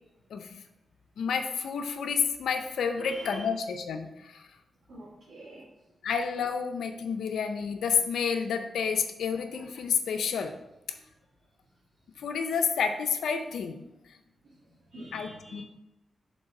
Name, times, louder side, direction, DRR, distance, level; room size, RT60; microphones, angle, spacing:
voice 1, 1.2-4.5 6.0-10.5 12.2-13.8 15.1-15.6, left 6 dB, 85° left, 6 dB, 0.4 m, -30 dB
voice 2, 2.9-3.5 4.9-5.6 14.9-15.6, right 1 dB, 70° right, -7 dB, 1.7 m, -45 dB
5.2 x 3.8 x 5.8 m, 0.90 s
cardioid pair, 65°, 0 cm